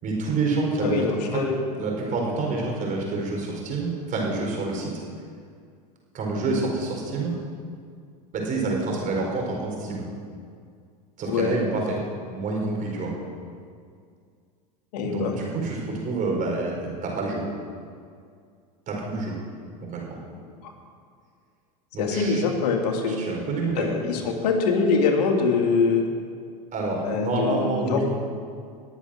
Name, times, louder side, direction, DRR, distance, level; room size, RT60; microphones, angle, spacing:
voice 1, 0.0-1.0 1.3-1.4 1.7-4.9 6.1-7.3 8.3-10.1 11.2-12.0 12.3-13.1 15.0-16.7 17.0-17.4 18.9-19.4 19.8-20.0 21.9-22.4 23.0-24.0 26.7-28.0, right 3 dB, 40° right, -1 dB, 4.6 m, -27 dB
voice 2, 0.8-1.6 11.3-11.5 14.9-15.3 22.0-23.2 23.8-26.1 27.0-28.0, left 5 dB, 75° left, 2 dB, 2.2 m, -23 dB
20.0 x 7.2 x 6.4 m, 2.2 s
hypercardioid pair, 105°, 21 cm